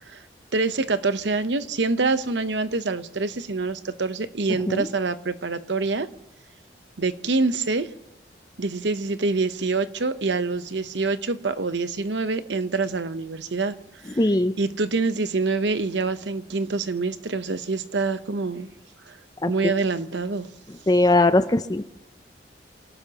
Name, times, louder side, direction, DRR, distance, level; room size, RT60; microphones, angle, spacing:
voice 1, 0.5-6.1 7.0-7.9 8.6-13.8 14.0-14.2 14.6-18.7 19.1-19.2 19.5-20.5, right 3 dB, 80° right, 11 dB, 0.9 m, -26 dB
voice 2, 14.2-14.5 19.4-19.5 20.9-21.8, left 2 dB, 20° left, 11 dB, 0.5 m, -19 dB
27.0 x 18.0 x 3.0 m, 0.92 s
head